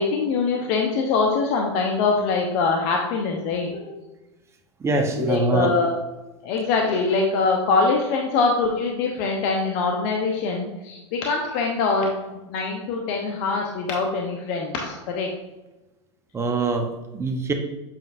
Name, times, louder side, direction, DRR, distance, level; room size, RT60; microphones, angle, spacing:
voice 1, 0.0-4.0 5.2-6.0 6.4-12.2 12.5-15.3, left 4 dB, 55° left, 1 dB, 0.9 m, -23 dB
voice 2, 4.8-5.7 16.3-17.5, right 3 dB, 15° right, 4 dB, 0.9 m, -24 dB
7.7 x 5.2 x 2.6 m, 1.0 s
hypercardioid pair, 110°, 15 cm